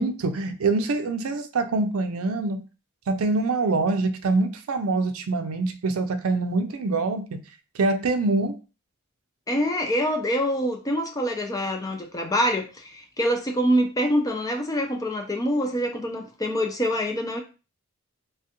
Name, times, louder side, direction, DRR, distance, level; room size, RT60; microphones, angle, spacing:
voice 1, 0.0-2.6 3.1-7.4 7.7-8.6, right 3 dB, 80° right, 0.5 m, -25 dB
voice 2, 9.5-17.4, equal, 15° left, 0.4 m, -25 dB
3.2 x 2.3 x 2.9 m
head